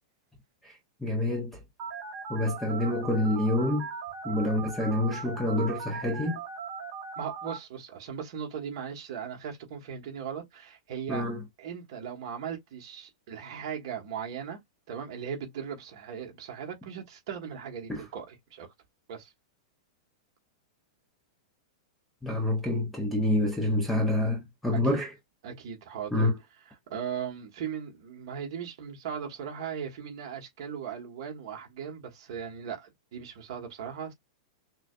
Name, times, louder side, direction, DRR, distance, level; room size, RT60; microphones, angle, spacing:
voice 1, 1.0-1.6 2.3-3.9 4.2-6.4 11.1-11.4 17.9-18.0 22.2-25.1 26.1-26.3, left 1 dB, ahead, 0.6 m, -27 dB
Telephone, 1.8-7.6, right 5 dB, 25° right, 2.5 m, -39 dB
voice 2, 7.2-11.2 11.6-14.6 14.9-18.7 19.1-19.3 24.7-25.0 25.4-26.3 26.7-34.1, right 7 dB, 40° right, 1.4 m, -38 dB
5.9 x 2.3 x 2.5 m
supercardioid pair, 180°, 3 cm